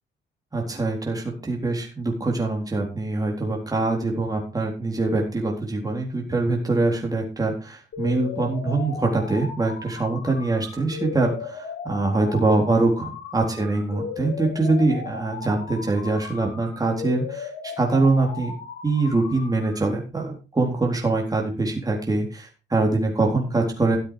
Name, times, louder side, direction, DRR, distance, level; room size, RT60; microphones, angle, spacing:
voice 1, 0.5-18.5 18.8-24.0, right 2 dB, 20° right, 0 dB, 4.0 m, -24 dB
sound 1, 7.9-19.9, left 5 dB, 70° left, 3.9 m, -36 dB
14.0 x 7.7 x 4.9 m, 0.32 s
cardioid pair, 90°, 20 cm